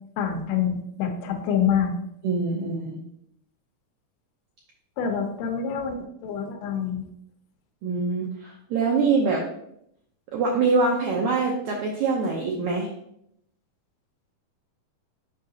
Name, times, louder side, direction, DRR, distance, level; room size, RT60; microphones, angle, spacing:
voice 1, 0.2-1.9 5.0-6.0 6.2-7.0, left 7 dB, 85° left, 4 dB, 2.9 m, -26 dB
voice 2, 2.2-3.0 7.8-9.4 10.3-12.9, right 4 dB, 90° right, -1 dB, 1.6 m, -24 dB
7.8 x 5.7 x 2.8 m, 0.75 s
omnidirectional pair, 4.4 m